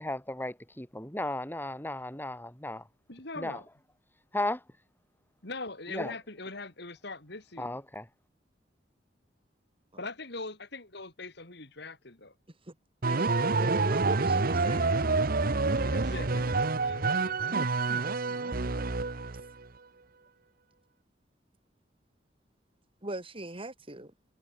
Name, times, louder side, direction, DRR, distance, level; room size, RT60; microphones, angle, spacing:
voice 1, 0.0-2.9 3.4-3.6 4.3-4.6 5.9-6.1 7.6-8.1, left 1 dB, 10° left, 6.7 m, -35 dB
voice 2, 3.1-3.7 5.4-7.8 10.0-12.3 15.8-17.7, left 3 dB, 65° left, 5.4 m, -42 dB
sound 1, 13.0-19.5, right 3 dB, 55° right, 1.1 m, -27 dB
voice 3, 13.1-14.9 23.0-24.1, right 1 dB, 30° right, 3.3 m, -39 dB
head